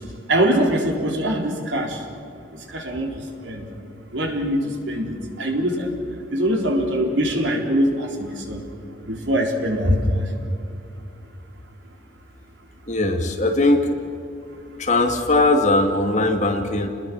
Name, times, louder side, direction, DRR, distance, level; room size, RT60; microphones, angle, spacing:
voice 1, 0.3-2.0 2.7-3.6 4.1-5.9 6.3-8.6 9.0-10.2, equal, 75° right, 1 dB, 4.0 m, -23 dB
voice 2, 12.9-13.9 14.8-16.9, left 2 dB, 40° left, 4 dB, 2.2 m, -19 dB
29.5 x 21.0 x 6.3 m, 2.7 s
head